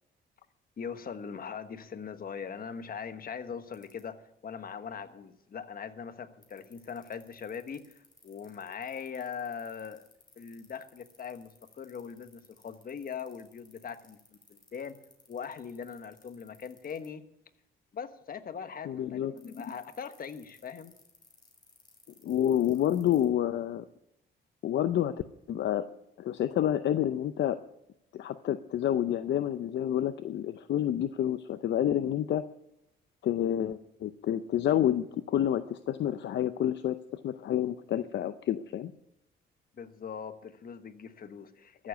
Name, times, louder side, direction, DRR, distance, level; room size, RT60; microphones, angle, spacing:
voice 1, 0.8-10.0 10.4-14.2 14.5-15.0 15.3-17.2 17.9-21.0 39.8-41.9, left 6 dB, 45° left, 9 dB, 1.3 m, -41 dB
sound 1, 3.7-4.0 6.4-17.1 19.4-23.3, left 3 dB, 20° left, 3.8 m, -59 dB
voice 2, 18.8-19.3 22.2-23.8 24.6-25.1 25.5-25.8 26.2-27.6 28.1-32.4 33.2-38.9, left 11 dB, 65° left, 11 dB, 0.7 m, -29 dB
14.0 x 7.5 x 9.3 m, 0.83 s
cardioid pair, 90°, 20 cm